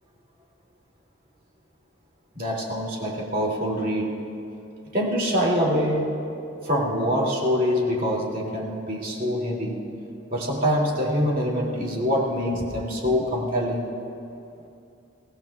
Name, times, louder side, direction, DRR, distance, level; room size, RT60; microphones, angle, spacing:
voice 1, 2.3-4.2 4.9-6.1 6.6-9.9 10.3-13.9, equal, 45° right, -3 dB, 2.7 m, -25 dB
24.0 x 18.0 x 2.4 m, 2.6 s
head